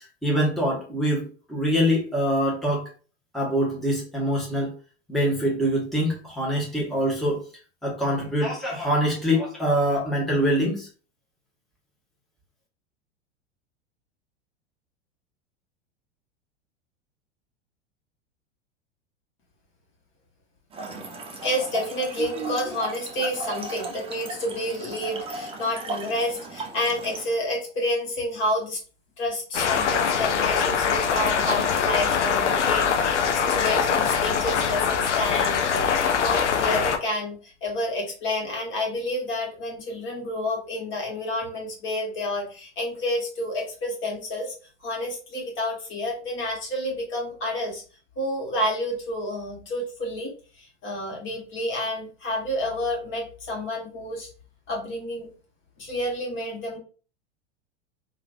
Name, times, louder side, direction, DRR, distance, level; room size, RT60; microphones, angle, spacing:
voice 1, 0.2-2.8 3.3-4.7 5.1-7.4 7.8-10.9, equal, ahead, -4 dB, 1.1 m, -24 dB
Trickle dribble / Fill (with liquid), 20.7-27.4, right 3 dB, 15° right, 0.6 m, -36 dB
voice 2, 21.4-28.8 29.2-44.5 44.8-47.8 48.2-50.3 50.6-54.3 54.7-55.3 55.8-56.8, left 1 dB, 35° left, -1 dB, 1.3 m, -29 dB
sound 1, 29.5-37.0, left 7 dB, 85° left, 0.5 m, -23 dB
3.0 x 2.6 x 2.5 m, 0.37 s
hypercardioid pair, 95°, 34 cm